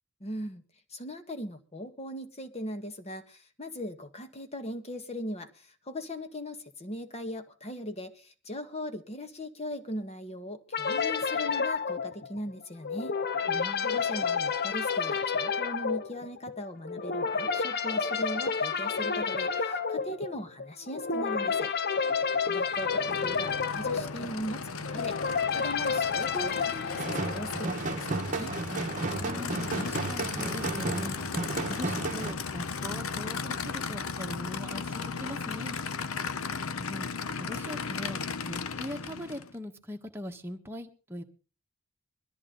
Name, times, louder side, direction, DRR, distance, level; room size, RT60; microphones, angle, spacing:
voice 1, 0.2-0.6 0.9-13.1 13.8-21.7 22.5-28.5, left 1 dB, 30° left, 8 dB, 1.6 m, -39 dB
sound 1, 10.7-27.9, left 5 dB, 50° left, 0.9 m, -30 dB
voice 2, 13.5-14.0 29.2-31.2 31.7-35.8 36.7-37.1 37.4-41.2, left 1 dB, 10° right, 3 dB, 1.5 m, -41 dB
Aircraft / Idling, 22.6-39.5, left 5 dB, 80° left, 0.8 m, -36 dB
sound 2, 26.9-32.3, right 3 dB, 35° right, 1.1 m, -33 dB
22.0 x 13.5 x 3.9 m, 0.38 s
head